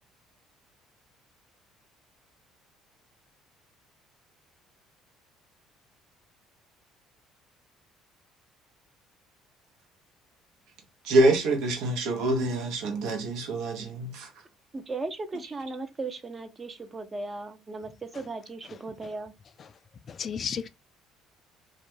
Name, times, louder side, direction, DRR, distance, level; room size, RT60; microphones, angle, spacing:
voice 1, 11.0-14.3, right 2 dB, 75° right, 0.7 m, -25 dB
voice 2, 14.7-19.3, right 3 dB, 30° right, 0.5 m, -37 dB
voice 3, 18.7-19.1 19.6-19.7 20.1-20.7, left 7 dB, 45° left, 0.3 m, -35 dB
2.4 x 2.2 x 3.1 m
supercardioid pair, 80°, 0 cm